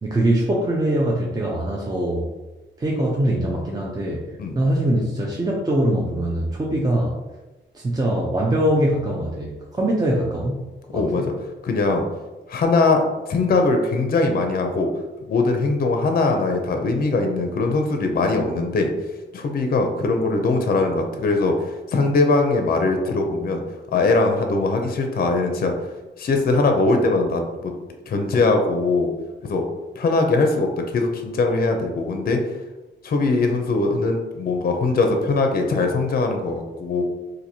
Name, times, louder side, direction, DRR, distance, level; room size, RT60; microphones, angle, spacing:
voice 1, 0.0-2.3 2.8-7.2 7.7-10.6 10.9-11.3, right 1 dB, 20° right, -3 dB, 0.4 m, -22 dB
voice 2, 10.9-11.3 11.6-12.0 12.5-13.0 13.3-14.9 15.3-18.9 19.3-21.5 21.9-23.6 23.9-25.7 26.2-27.7 28.1-29.1 29.5-29.7 30.0-32.4 33.0-37.0, left 3 dB, 50° left, 4 dB, 0.5 m, -21 dB
4.2 x 2.6 x 2.7 m, 1.1 s
wide cardioid pair, 140°, 20 cm